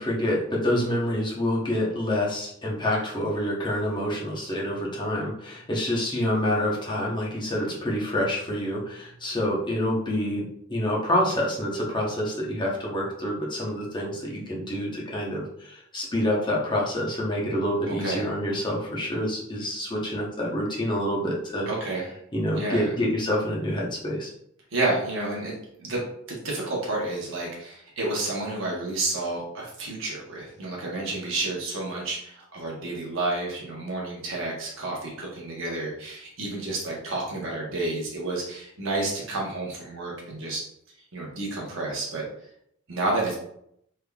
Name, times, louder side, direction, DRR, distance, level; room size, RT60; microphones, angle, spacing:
voice 1, 0.0-21.7 22.3-24.3, left 1 dB, 20° left, -4 dB, 0.9 m, -27 dB
voice 2, 17.9-18.3 21.7-22.1 22.6-22.9 24.7-40.7 41.1-42.3 42.9-43.4, right 2 dB, 65° right, -3 dB, 1.0 m, -30 dB
3.5 x 3.3 x 2.3 m, 0.72 s
head